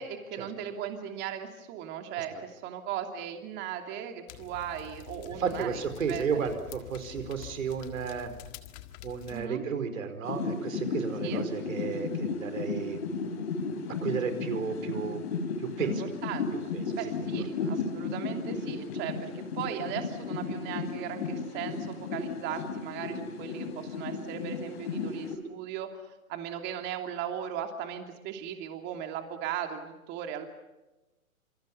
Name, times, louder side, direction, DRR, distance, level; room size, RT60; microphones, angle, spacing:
voice 1, 0.0-5.8 6.1-6.2 9.3-9.7 11.2-11.4 15.8-16.0 16.2-30.5, right 9 dB, 25° right, 5 dB, 2.9 m, -37 dB
sound 1, 4.3-9.5, left 14 dB, 30° left, 1.8 m, -47 dB
voice 2, 5.3-8.3 9.0-13.2 14.0-15.2 15.6-16.0 16.5-17.1 17.6-17.7, right 6 dB, 65° right, 9 dB, 4.9 m, -33 dB
sound 2, 10.2-25.4, left 4 dB, 50° left, 4.6 m, -34 dB
27.0 x 27.0 x 5.6 m, 1.0 s
hypercardioid pair, 140°, 43 cm